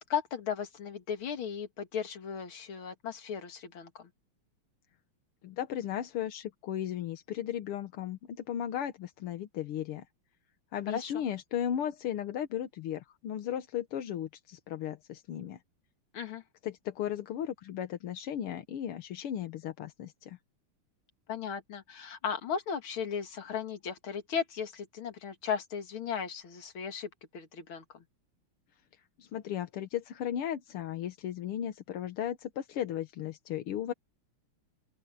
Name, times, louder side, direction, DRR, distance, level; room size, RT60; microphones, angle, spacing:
voice 1, 0.1-4.1 10.9-11.1 16.1-16.4 21.3-28.0, left 7 dB, 70° left, 2.7 m, -36 dB
voice 2, 5.4-10.1 10.7-15.6 16.6-20.4 29.2-33.9, left 10 dB, 85° left, 2.0 m, -36 dB
open air
omnidirectional pair, 2.4 m